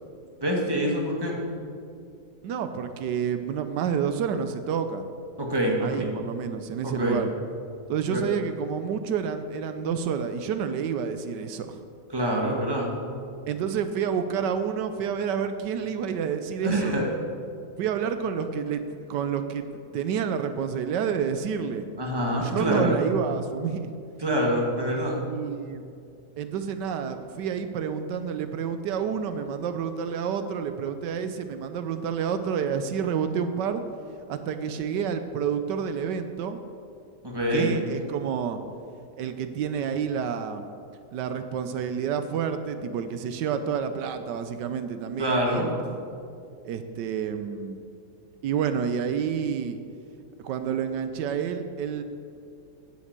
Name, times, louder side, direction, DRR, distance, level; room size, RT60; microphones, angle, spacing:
voice 1, 0.4-1.4 5.4-6.1 6.8-7.2 8.1-8.2 12.1-12.9 16.6-17.0 22.0-23.0 24.2-25.2 37.2-37.7 45.2-45.7, equal, 15° right, -1 dB, 1.9 m, -25 dB
voice 2, 2.4-5.1 5.8-7.3 7.9-11.8 13.5-17.0 17.8-19.7 19.9-21.9 22.4-23.9 25.3-25.8 26.4-33.8 34.3-36.6 37.5-38.6 39.2-40.7 41.1-46.1 46.6-47.8 48.4-49.8 50.4-52.0, right 7 dB, 85° right, 9 dB, 1.3 m, -29 dB
9.6 x 8.3 x 8.1 m, 2.4 s
omnidirectional pair, 1.8 m